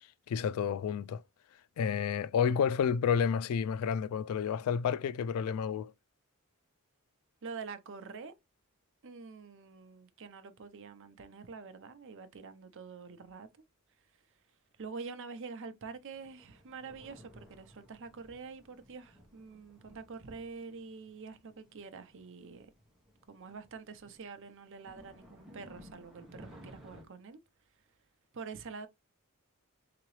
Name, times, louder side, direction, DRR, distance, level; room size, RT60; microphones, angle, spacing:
voice 1, 0.3-1.2 1.8-5.9, left 7 dB, 75° left, 0.3 m, -30 dB
voice 2, 7.4-8.3 9.0-13.6 14.8-22.7 23.3-27.4 28.3-28.9, right 4 dB, 60° right, 0.6 m, -46 dB
sound 1, 16.1-27.0, equal, ahead, 1.1 m, -57 dB
3.8 x 2.9 x 3.1 m
head